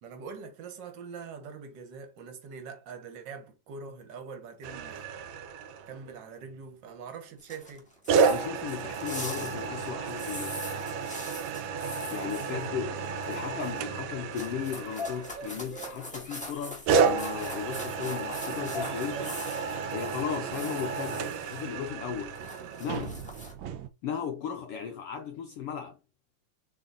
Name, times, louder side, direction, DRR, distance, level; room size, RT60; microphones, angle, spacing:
voice 1, 0.0-5.1 5.9-7.9 12.1-13.1 15.5-15.6, right 5 dB, 50° right, 1.5 m, -43 dB
sound 1, 4.6-6.2 8.1-15.9 16.9-23.9, right 5 dB, 75° right, 1.8 m, -31 dB
sound 2, 7.4-12.7 13.0-14.0 14.3-21.6 22.0-23.5, left 1 dB, 5° left, 1.1 m, -43 dB
voice 2, 8.3-10.8 12.1-13.0 13.3-19.4 19.9-22.4 22.8-23.2 24.0-26.0, left 8 dB, 75° left, 1.3 m, -36 dB
sound 3, 14.6-18.4 18.7-19.9, left 2 dB, 35° left, 0.9 m, -41 dB
7.4 x 3.3 x 4.0 m
omnidirectional pair, 3.3 m